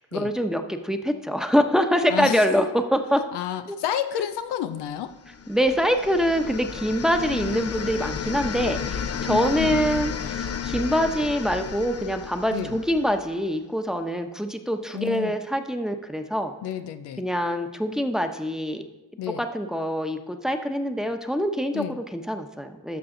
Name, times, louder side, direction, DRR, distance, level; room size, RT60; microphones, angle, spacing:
voice 1, 0.0-3.2 3.7-3.8 5.5-16.5 17.2-18.8 19.4-23.0, equal, ahead, 5 dB, 1.1 m, -25 dB
voice 2, 2.1-2.4 3.3-5.1 9.3-9.8 12.5-12.8 14.9-15.4 16.6-17.2 19.2-19.4 21.7-22.0, left 10 dB, 85° left, 9 dB, 0.6 m, -30 dB
sound 1, 5.3-13.3, left 7 dB, 40° left, 0.6 m, -32 dB
12.5 x 6.1 x 3.9 m, 1.0 s
supercardioid pair, 40°, 40 cm